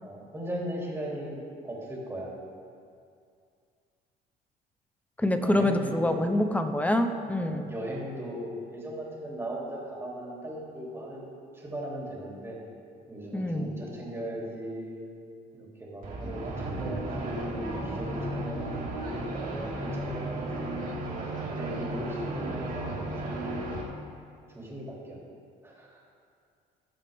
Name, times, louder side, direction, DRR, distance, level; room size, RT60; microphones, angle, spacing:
voice 1, 0.0-2.3 5.4-6.3 7.4-12.6 13.1-15.0 15.5-19.2 19.6-21.1 21.5-23.8 24.5-25.2 25.6-26.0, equal, 15° right, -4 dB, 3.1 m, -38 dB
voice 2, 5.2-7.7 13.3-13.7, left 1 dB, 10° left, 7 dB, 0.8 m, -26 dB
sound 1, 16.0-23.8, right 2 dB, 55° right, 2.7 m, -34 dB
19.5 x 7.4 x 3.6 m, 2.3 s
cardioid pair, 110°, 17 cm